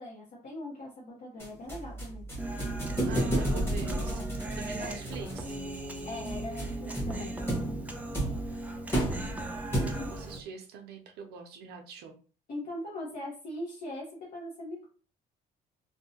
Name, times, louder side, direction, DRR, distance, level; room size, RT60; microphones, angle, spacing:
voice 1, 0.0-2.2 4.8-4.9 6.1-7.3 10.0-10.1 12.5-14.8, left 1 dB, 55° left, -4 dB, 0.9 m, -40 dB
sound 1, 1.4-10.3, right 1 dB, 15° left, 1.1 m, -33 dB
Human voice, 2.4-10.4, right 1 dB, 10° right, 0.4 m, -38 dB
voice 2, 3.0-4.3 4.6-5.5 9.1-12.2, right 5 dB, 75° right, 5 dB, 0.5 m, -44 dB
2.6 x 2.1 x 2.7 m, 0.38 s
cardioid pair, 110°, 17 cm